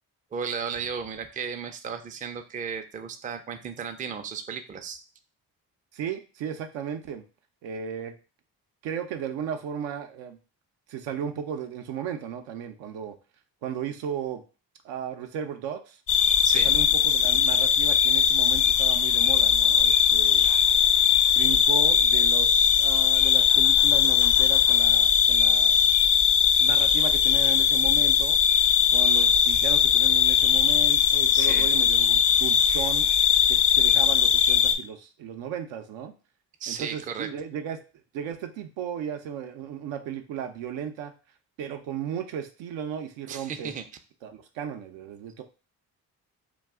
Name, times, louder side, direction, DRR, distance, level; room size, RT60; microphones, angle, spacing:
voice 1, 0.3-5.0 16.4-16.7 31.3-31.7 36.6-37.3 43.3-43.8, right 6 dB, 20° right, 7 dB, 0.3 m, -34 dB
voice 2, 5.9-7.2 7.6-8.2 8.8-10.4 10.9-13.1 13.6-14.4 14.8-16.0 16.5-20.5 21.3-25.8 26.6-28.4 28.9-33.1 33.5-36.1 36.7-37.8 38.1-41.1 41.6-43.7 44.2-45.4, right 8 dB, 80° right, 6 dB, 0.5 m, -35 dB
sound 1, 16.1-34.7, left 8 dB, 50° left, 0.5 m, -20 dB
2.3 x 2.3 x 3.4 m, 0.34 s
supercardioid pair, 50°, 44 cm